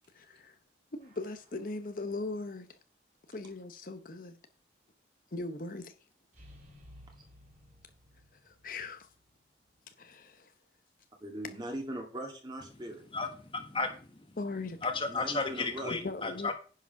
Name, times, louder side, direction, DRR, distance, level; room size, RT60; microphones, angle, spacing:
voice 1, 0.1-0.6 0.9-2.7 3.3-4.4 5.3-5.9 8.4-9.1 10.0-10.5 14.4-14.8 15.9-16.5, left 2 dB, 50° left, 0.9 m, -39 dB
banging on metal, 1.0-1.9 6.3-9.3 9.6-9.7, left 1 dB, 40° right, 3.5 m, -57 dB
voice 2, 11.2-13.0 15.0-16.0, right 1 dB, 25° right, 2.2 m, -40 dB
voice 3, 13.1-14.4 14.8-16.5, left 3 dB, 30° left, 1.3 m, -34 dB
10.0 x 5.0 x 5.8 m
head